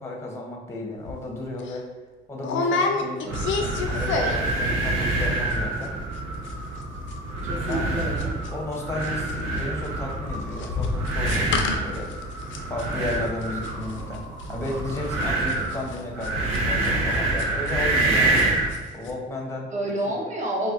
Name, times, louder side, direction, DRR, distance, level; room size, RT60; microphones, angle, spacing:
voice 1, 0.0-1.9 2.3-6.3 7.6-8.0 8.5-12.1 12.7-18.4 18.9-19.7 20.0-20.2, left 2 dB, 15° left, -1 dB, 0.7 m, -34 dB
sound 1, 1.1-1.2 1.6-1.8 2.4-4.6 4.8-5.3 5.5-5.6 5.8-6.2 6.4-8.8 9.0-18.1 18.3-18.8 19.0-19.1, left 4 dB, 75° left, 0.4 m, -30 dB
sound 2, 3.3-18.8, right 2 dB, 90° right, 0.6 m, -27 dB
voice 2, 7.4-8.4 19.7-20.7, right 1 dB, 40° right, -2 dB, 0.9 m, -29 dB
4.0 x 2.2 x 2.4 m, 1.3 s
cardioid pair, 90°, 20 cm